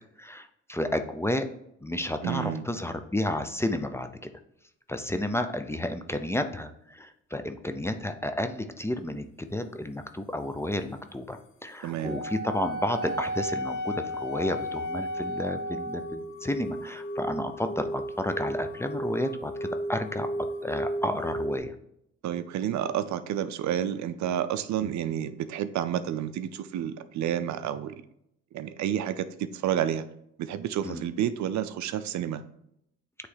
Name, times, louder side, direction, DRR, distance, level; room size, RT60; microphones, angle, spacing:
voice 1, 0.2-1.5 1.8-4.3 4.9-19.5 19.9-20.3 20.6-21.7 24.8-24.9 30.8-31.0, left 1 dB, 10° left, 8 dB, 0.5 m, -31 dB
voice 2, 2.2-2.7 11.8-12.2 22.2-28.0 28.5-30.0 30.4-32.4, right 10 dB, 70° right, 12 dB, 0.5 m, -30 dB
Wind instrument woodwind instrument, 12.0-16.2, equal, 90° left, 0.7 m, -33 dB
sound 1, 13.2-21.6, right 1 dB, 40° left, 0.9 m, -35 dB
8.5 x 3.2 x 3.9 m, 0.76 s
cardioid pair, 90°, 30 cm